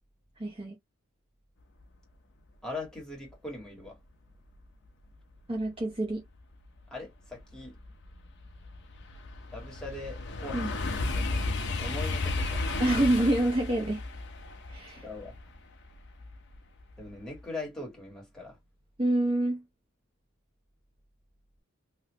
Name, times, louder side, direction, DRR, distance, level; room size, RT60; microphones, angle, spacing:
voice 1, 0.4-0.7 5.5-6.2 10.5-10.7 12.8-14.0 14.7-15.0 19.0-19.6, right 1 dB, 25° right, 0.8 m, -27 dB
voice 2, 2.6-4.0 6.9-7.8 9.5-12.7 15.0-15.3 17.0-18.6, left 2 dB, 5° left, 1.7 m, -41 dB
sound 1, 6.9-7.0 7.5-16.6 17.0-17.4, left 2 dB, 55° left, 0.9 m, -33 dB
3.2 x 2.7 x 3.1 m
head